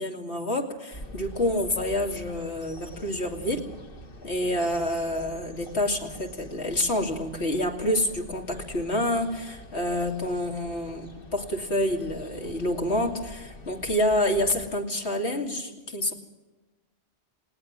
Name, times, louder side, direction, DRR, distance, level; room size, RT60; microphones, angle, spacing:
voice 1, 0.0-3.6 4.2-16.1, left 1 dB, 70° left, 3 dB, 3.0 m, -28 dB
sound 1, 0.9-14.8, left 1 dB, 50° left, 1.8 m, -45 dB
20.0 x 18.5 x 7.4 m, 1.2 s
omnidirectional pair, 1.2 m